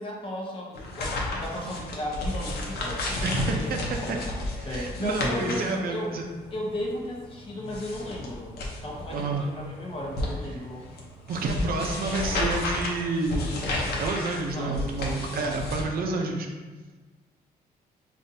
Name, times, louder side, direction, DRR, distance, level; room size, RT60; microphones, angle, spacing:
voice 1, 0.0-3.7 4.0-4.3 4.6-6.1 6.5-8.5 8.8-10.8 14.5-15.8, left 1 dB, 35° left, -2 dB, 0.9 m, -35 dB
sound 1, 0.7-15.8, left 1 dB, 75° left, 0.8 m, -33 dB
voice 2, 3.2-4.2 4.6-6.2 9.1-9.5 11.3-16.5, right 3 dB, 65° right, 2 dB, 0.6 m, -29 dB
5.2 x 2.5 x 2.6 m, 1.3 s
cardioid pair, 110°, 17 cm